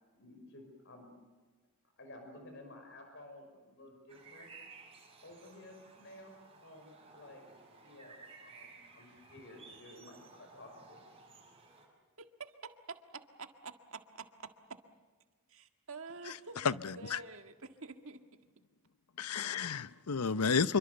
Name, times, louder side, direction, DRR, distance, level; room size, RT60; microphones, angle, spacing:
voice 1, 0.1-1.1 2.0-4.5 5.2-7.5 7.8-11.0, left 1 dB, 55° left, 5.9 m, -53 dB
sound 1, 4.1-11.9, right 4 dB, 25° right, 5.6 m, -56 dB
voice 2, 12.2-14.8 15.5-18.4, right 4 dB, 65° right, 1.8 m, -48 dB
voice 3, 16.6-17.2 19.2-20.8, left 5 dB, 85° left, 0.8 m, -31 dB
27.0 x 24.0 x 7.0 m
head